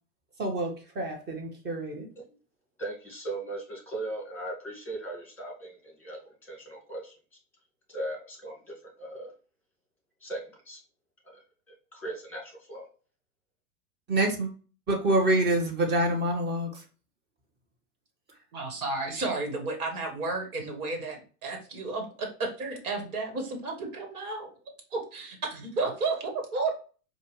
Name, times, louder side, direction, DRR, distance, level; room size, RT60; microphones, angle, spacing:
voice 1, 0.4-2.1 14.1-14.5 14.9-16.8, right 1 dB, 20° right, 2 dB, 1.2 m, -27 dB
voice 2, 2.8-7.1 7.9-9.3 10.2-10.8 11.2-11.4 11.7-12.8, right 2 dB, 5° left, 0 dB, 1.7 m, -38 dB
voice 3, 18.5-21.2 21.4-24.5 24.9-26.7, right 3 dB, 70° right, 3 dB, 1.5 m, -32 dB
4.6 x 2.5 x 3.2 m, 0.38 s
hypercardioid pair, 105°, 46 cm